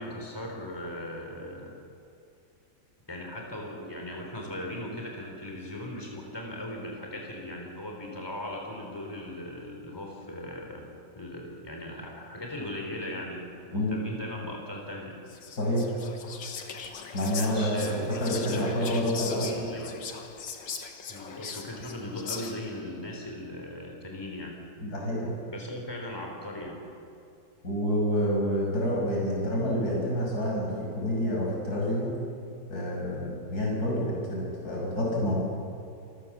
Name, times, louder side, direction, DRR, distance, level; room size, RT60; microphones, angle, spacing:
voice 1, 0.0-1.7 3.1-10.8 11.1-15.2 17.2-20.0 21.1-24.5 25.5-26.8, left 1 dB, 10° left, 0 dB, 3.6 m, -38 dB
Whispering, 15.3-22.8, left 6 dB, 70° left, 2.1 m, -40 dB
voice 2, 17.1-19.6 24.8-25.3 27.6-32.2 32.7-35.4, equal, 55° left, -4 dB, 6.6 m, -28 dB
27.0 x 15.0 x 7.3 m, 2.6 s
omnidirectional pair, 2.0 m